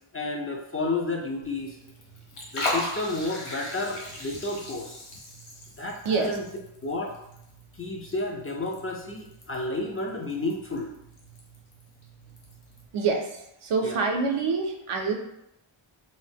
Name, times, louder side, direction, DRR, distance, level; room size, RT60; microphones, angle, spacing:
voice 1, 0.1-1.8 2.5-5.0 5.8-6.4 6.8-7.1 7.8-10.9 13.8-14.0, left 2 dB, 30° left, 0 dB, 0.4 m, -31 dB
Liquid, 1.4-12.9, left 1 dB, 90° left, 0.7 m, -39 dB
voice 2, 6.0-6.4 12.9-15.1, right 4 dB, 80° right, 3 dB, 0.6 m, -26 dB
2.7 x 2.0 x 3.4 m, 0.81 s
wide cardioid pair, 60°, 49 cm